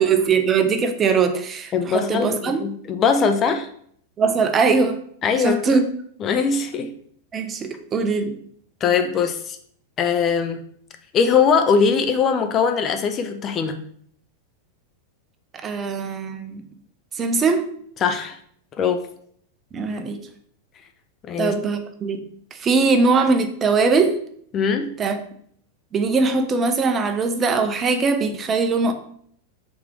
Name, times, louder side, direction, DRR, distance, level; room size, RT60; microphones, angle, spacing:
voice 1, 0.0-2.6 4.2-5.0 5.4-5.8 7.3-8.4 15.6-16.6 17.2-17.6 19.7-20.2 21.4-22.2 22.6-24.2 25.0-25.2 25.9-28.9, right 4 dB, 25° right, 7 dB, 0.5 m, -21 dB
voice 2, 1.7-3.7 5.2-5.8 6.2-7.0 8.8-9.6 10.0-10.6 11.1-13.8 18.0-18.4 18.8-19.1 21.2-21.5 24.5-25.0, left 6 dB, 30° left, 6 dB, 0.4 m, -21 dB
3.4 x 3.3 x 4.6 m, 0.63 s
figure-of-eight pair, 90°, 0 cm